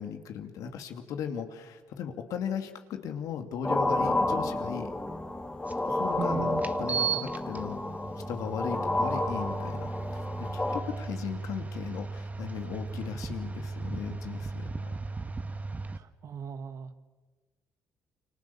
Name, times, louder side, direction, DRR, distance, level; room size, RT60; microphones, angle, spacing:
voice 1, 0.0-4.9 5.8-7.8 8.3-14.9, left 7 dB, 70° left, 6 dB, 2.6 m, -37 dB
sound 1, 3.6-10.8, left 2 dB, 15° left, 3.1 m, -30 dB
sound 2, 5.7-5.8 6.6-16.0, right 4 dB, 25° right, 1.5 m, -36 dB
voice 2, 6.2-6.6 15.9-17.0, right 8 dB, 60° right, 10 dB, 1.8 m, -37 dB
29.0 x 25.5 x 7.2 m, 1.3 s
supercardioid pair, 60°, 6 cm